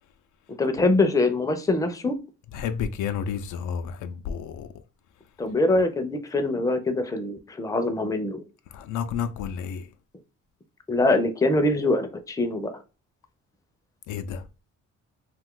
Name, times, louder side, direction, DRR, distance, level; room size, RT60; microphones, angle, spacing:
voice 1, 0.5-2.2 5.4-8.4 10.9-12.8, left 2 dB, 10° left, 0.5 m, -23 dB
voice 2, 2.5-4.7 8.7-9.9 14.1-14.4, left 7 dB, 80° left, 0.5 m, -31 dB
2.6 x 2.4 x 3.6 m
cardioid pair, 90°, 30 cm